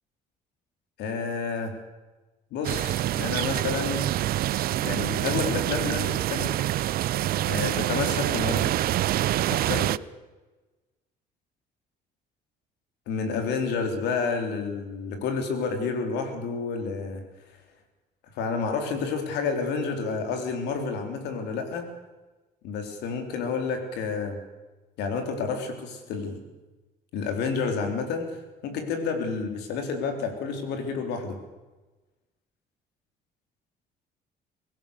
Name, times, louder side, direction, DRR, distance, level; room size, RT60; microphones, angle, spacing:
voice 1, 1.0-1.8 2.5-4.0 4.8-6.5 7.5-8.8 9.5-10.0 13.1-17.2 18.3-21.9 22.6-24.4 25.0-26.4 27.1-28.4 28.6-31.4, left 5 dB, 85° left, 5 dB, 3.9 m, -30 dB
sound 1, 2.6-10.0, right 14 dB, 60° right, 0.6 m, -26 dB
24.0 x 16.5 x 6.7 m, 1.2 s
cardioid pair, 110°, 17 cm